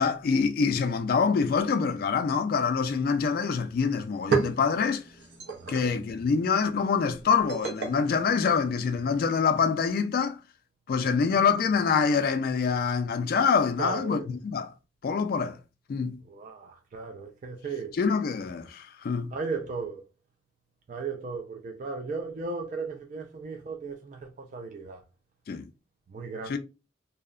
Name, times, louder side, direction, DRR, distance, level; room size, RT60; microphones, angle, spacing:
voice 1, 0.0-5.0 5.7-10.4 10.9-14.7 15.0-15.6 15.9-16.2 18.0-19.3 25.5-25.7 26.5-26.6, left 5 dB, 55° left, 0.3 m, -25 dB
sound 1, 4.0-9.2, right 4 dB, 75° right, 0.7 m, -34 dB
voice 2, 5.6-5.9 13.8-14.3 16.3-18.0 19.3-20.0 20.9-25.0 26.1-26.6, right 4 dB, 45° right, 0.3 m, -36 dB
2.7 x 2.1 x 2.4 m
head